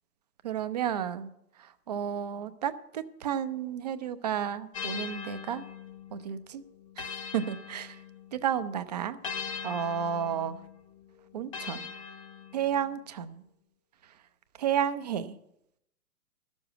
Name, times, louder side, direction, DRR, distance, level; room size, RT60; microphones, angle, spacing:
voice 1, 0.4-1.3 1.9-5.6 6.1-6.6 7.3-7.9 8.3-9.2 9.6-10.6 11.3-11.8 12.5-13.4 14.6-15.3, right 9 dB, 25° right, 12 dB, 0.5 m, -31 dB
sound 1, 4.7-8.5 9.2-12.9, left 6 dB, 25° left, 0.5 m, -41 dB
12.0 x 7.1 x 9.0 m, 0.78 s
figure-of-eight pair, 125°, 47 cm